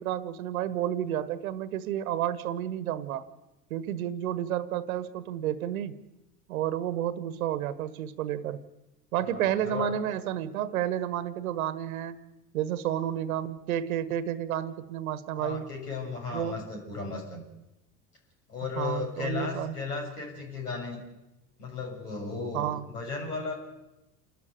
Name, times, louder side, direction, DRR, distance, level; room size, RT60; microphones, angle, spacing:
voice 1, 0.0-3.2 3.7-6.0 6.5-8.6 9.1-12.2 12.5-15.7 16.3-16.6 18.8-19.7 22.5-22.9, right 11 dB, 65° right, 15 dB, 1.4 m, -31 dB
voice 2, 9.2-9.9 15.4-17.4 18.5-21.0 21.6-23.6, left 4 dB, 75° left, 0 dB, 7.3 m, -35 dB
29.0 x 13.5 x 8.2 m, 0.96 s
figure-of-eight pair, 75°, 46 cm